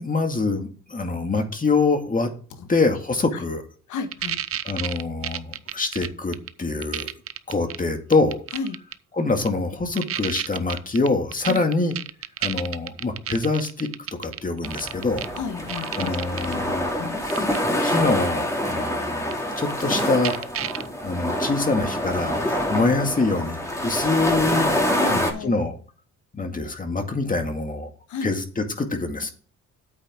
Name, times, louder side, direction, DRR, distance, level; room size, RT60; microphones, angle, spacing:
voice 1, 0.0-2.3 2.7-3.6 4.6-7.1 7.5-8.4 9.1-11.9 12.4-13.9 14.2-15.2 16.0-17.0 17.2-17.5 17.8-20.4 21.0-24.7 25.1-25.8 26.3-27.9 28.2-29.3, left 3 dB, 25° left, 4 dB, 2.1 m, -25 dB
voice 2, 3.9-4.4 8.5-8.8 11.5-11.6 15.4-16.3 17.0-17.1 22.7-22.9 24.9-25.5 28.1-28.3, left 5 dB, 75° left, 7 dB, 1.6 m, -32 dB
sound 1, 4.1-6.5 6.8-7.8 8.1-8.9 9.5-9.6 10.0-15.4 15.7-16.5 17.3-17.6 19.3-19.4 19.7-19.8 20.0-20.9, right 10 dB, 50° right, 0.6 m, -30 dB
sound 2, 14.6-25.3, equal, 10° left, 2.6 m, -26 dB
9.1 x 8.4 x 3.7 m, 0.41 s
cardioid pair, 90°, 30 cm